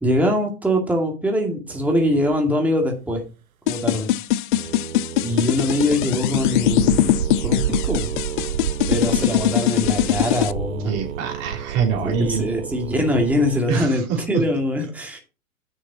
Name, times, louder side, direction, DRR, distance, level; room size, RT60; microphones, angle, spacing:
voice 1, 0.0-3.2 3.7-4.1 5.2-8.1 8.9-11.0 12.0-15.2, left 1 dB, 5° right, 2 dB, 2.2 m, -23 dB
sound 1, 1.7-2.3 4.5-13.6, right 9 dB, 85° right, 0.7 m, -30 dB
sound 2, 3.7-10.5, left 14 dB, 40° left, 0.5 m, -21 dB
voice 2, 10.8-12.5 13.7-14.4, right 6 dB, 35° right, 1 dB, 3.0 m, -24 dB
9.8 x 6.4 x 4.1 m, 0.33 s
figure-of-eight pair, 110°, 41 cm